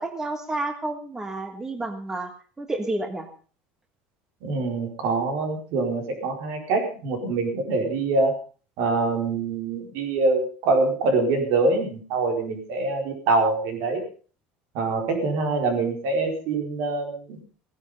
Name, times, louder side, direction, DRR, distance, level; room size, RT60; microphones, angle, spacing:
voice 1, 0.0-2.3 2.6-3.3, right 2 dB, 10° right, 6 dB, 1.5 m, -30 dB
voice 2, 4.4-8.3 8.8-14.0 14.7-17.4, right 3 dB, 65° right, 3 dB, 4.6 m, -24 dB
16.5 x 11.0 x 5.5 m, 0.40 s
cardioid pair, 145°, 4 cm